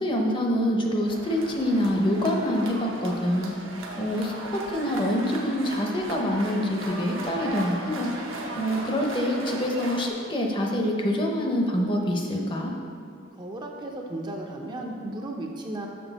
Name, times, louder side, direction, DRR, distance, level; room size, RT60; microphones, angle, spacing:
voice 1, 0.0-3.5 4.0-4.3 4.7-8.1 8.5-12.7, equal, 25° left, 1 dB, 0.6 m, -25 dB
sound 1, 1.1-10.1, right 2 dB, 80° right, 0.9 m, -37 dB
voice 2, 13.4-15.9, right 1 dB, 20° right, 1 dB, 0.5 m, -35 dB
6.2 x 6.1 x 4.0 m, 2.4 s
head